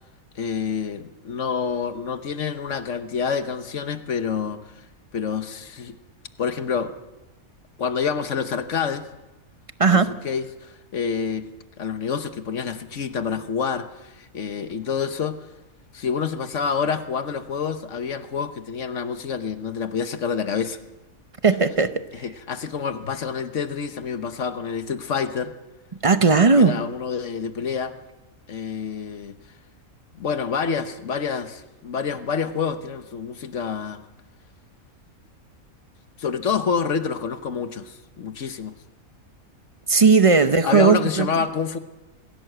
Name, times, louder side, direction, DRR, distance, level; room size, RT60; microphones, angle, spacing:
voice 1, 0.3-4.8 5.1-6.0 6.4-6.9 7.8-9.1 9.9-11.5 11.8-15.5 15.9-20.8 22.1-25.5 26.6-27.9 28.5-29.4 30.1-34.0 36.2-38.8 40.3-41.8, left 6 dB, 60° left, 10 dB, 1.3 m, -27 dB
voice 2, 9.8-10.1 21.4-21.9 26.0-26.7 39.9-41.3, right 4 dB, 30° right, 11 dB, 0.6 m, -16 dB
22.0 x 16.0 x 7.9 m, 1.1 s
omnidirectional pair, 1.5 m